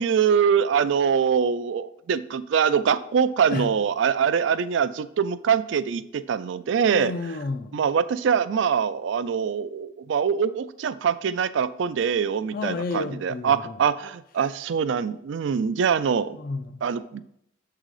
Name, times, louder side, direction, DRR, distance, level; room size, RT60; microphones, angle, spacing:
voice 1, 0.0-7.1 7.7-16.4 16.8-17.2, right 7 dB, 70° right, 0.3 m, -23 dB
voice 2, 6.9-7.8 12.5-13.8 16.3-16.8, left 3 dB, 45° left, 0.4 m, -31 dB
7.4 x 3.8 x 4.8 m
head